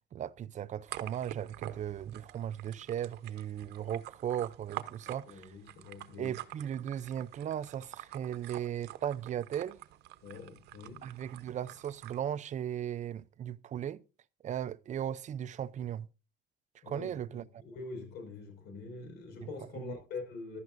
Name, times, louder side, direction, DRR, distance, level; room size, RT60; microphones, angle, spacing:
voice 1, 0.1-5.5 6.2-9.8 11.0-14.0 14.4-16.1 16.9-17.4 19.7-20.0, right 10 dB, 45° right, 0.6 m, -37 dB
sound 1, 0.9-12.2, right 14 dB, 75° right, 0.9 m, -47 dB
voice 2, 5.3-6.4 10.2-11.1 16.8-20.6, left 3 dB, 80° left, 5.4 m, -44 dB
15.5 x 12.0 x 2.6 m
cardioid pair, 110°, 17 cm